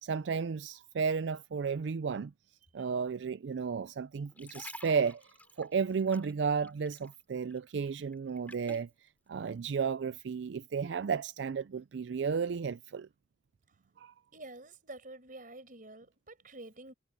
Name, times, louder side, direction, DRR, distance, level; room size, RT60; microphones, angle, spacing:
voice 1, 0.0-2.3 2.7-5.2 5.6-13.1 14.0-14.1, right 6 dB, 85° right, 0.4 m, -33 dB
sound 1, 4.1-7.2 7.5-8.9 9.5-9.7, left 2 dB, 10° left, 2.9 m, -50 dB
voice 2, 14.3-16.9, right 2 dB, 50° right, 6.0 m, -48 dB
head